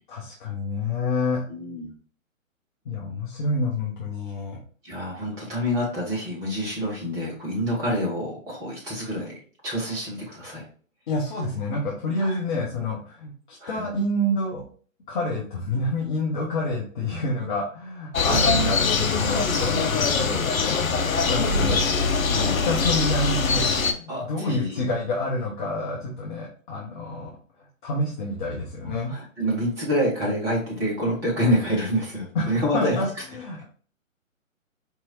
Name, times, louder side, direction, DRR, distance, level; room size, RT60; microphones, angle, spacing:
voice 1, 0.1-1.4 2.8-4.6 11.1-14.6 15.1-22.2 22.6-23.7 23.9-27.3 27.6-29.1 32.3-33.1 33.3-33.6, left 2 dB, 35° left, -3 dB, 0.9 m, -28 dB
voice 2, 1.5-1.9 4.8-9.3 9.6-10.6 12.2-12.4 13.6-13.9 18.3-18.6 19.2-19.5 22.3-22.6 24.1-24.8 29.0-33.0 33.6-33.7, equal, 10° right, -4 dB, 0.7 m, -27 dB
sound 1, 18.1-23.9, left 4 dB, 85° left, 0.7 m, -22 dB
4.6 x 3.0 x 2.7 m, 0.42 s
figure-of-eight pair, 140°, 40 cm